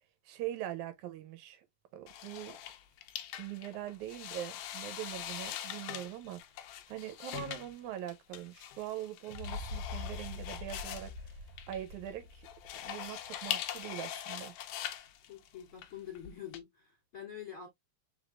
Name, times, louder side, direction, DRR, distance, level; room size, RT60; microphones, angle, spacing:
voice 1, 0.3-1.6 1.9-2.6 3.4-6.4 6.9-11.4 11.7-12.5 12.8-14.5, right 12 dB, 85° right, 2.1 m, -42 dB
sound 1, 2.1-16.6, left 11 dB, 85° left, 1.3 m, -42 dB
sound 2, 9.3-13.2, left 3 dB, 60° right, 1.5 m, -43 dB
voice 2, 15.3-17.7, left 9 dB, 30° left, 2.9 m, -46 dB
4.7 x 3.5 x 2.4 m
omnidirectional pair, 3.4 m